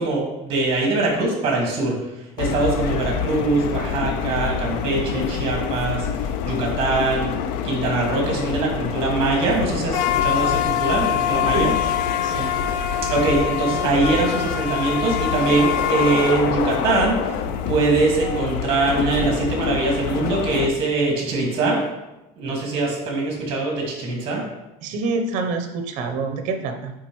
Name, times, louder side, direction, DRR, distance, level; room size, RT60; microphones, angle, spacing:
voice 1, 0.0-2.0 2.4-6.1 6.4-7.3 7.6-11.7 13.1-21.8 22.4-24.4, right 3 dB, 40° right, -1 dB, 2.0 m, -22 dB
sound 1, 2.4-20.7, left 8 dB, 70° left, 0.4 m, -25 dB
voice 2, 12.2-12.5 24.8-26.9, right 3 dB, 55° right, 5 dB, 0.9 m, -26 dB
8.8 x 3.8 x 3.2 m, 0.96 s
cardioid pair, 165°, 15 cm